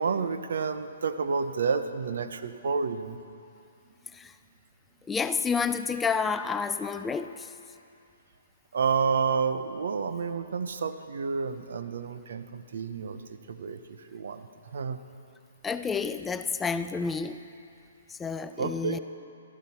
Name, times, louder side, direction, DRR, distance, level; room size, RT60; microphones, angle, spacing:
voice 1, 0.0-3.2 8.7-15.0 18.6-19.0, right 5 dB, 70° right, 10 dB, 0.7 m, -30 dB
voice 2, 5.1-7.5 15.6-17.4 18.1-19.0, left 5 dB, 10° left, 10 dB, 0.3 m, -30 dB
16.5 x 12.5 x 4.3 m, 2.6 s
hypercardioid pair, 145°, 0 cm